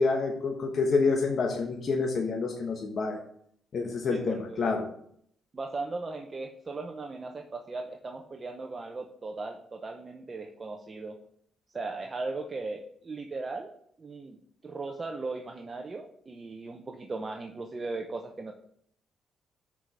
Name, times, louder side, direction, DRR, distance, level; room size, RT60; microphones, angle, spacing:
voice 1, 0.0-3.2 3.7-4.8, left 4 dB, 55° left, 1 dB, 1.2 m, -27 dB
voice 2, 4.1-4.7 5.5-11.2 11.7-13.7 14.0-14.4 14.6-18.5, right 3 dB, 35° right, 4 dB, 0.7 m, -37 dB
6.2 x 4.8 x 5.7 m, 0.67 s
cardioid pair, 85°, 0 cm